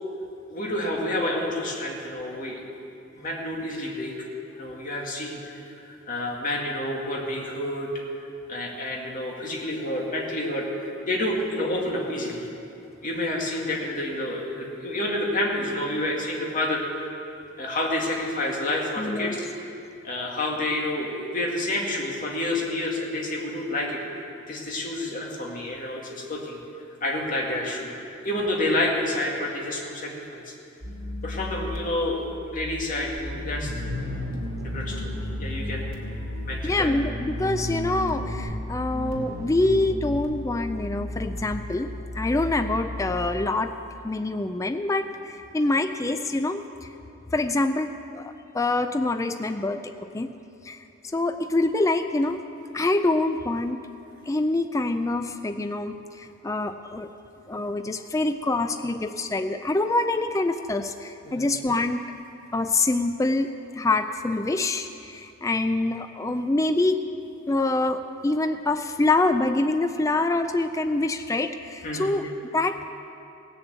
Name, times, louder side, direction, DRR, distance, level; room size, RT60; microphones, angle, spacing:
voice 1, 0.5-2.7 3.2-4.1 4.5-5.4 5.7-7.9 8.5-12.5 13.0-17.1 17.6-19.5 20.0-24.0 24.5-26.6 27.0-27.9 28.2-30.4 31.2-34.0 34.4-34.5 34.7-35.8 36.4-36.9 61.2-61.5 71.8-72.1, left 1 dB, 40° left, -2 dB, 2.1 m, -29 dB
voice 2, 19.0-19.4 36.6-43.7 44.0-46.9 47.3-50.3 50.6-50.9 51.1-52.4 52.7-53.8 54.3-57.1 57.5-62.0 62.5-67.0 67.5-72.9, left 2 dB, 15° left, 8 dB, 0.3 m, -25 dB
sound 1, 30.8-43.3, left 1 dB, 75° right, 2.6 m, -33 dB
17.5 x 7.0 x 8.1 m, 2.7 s
head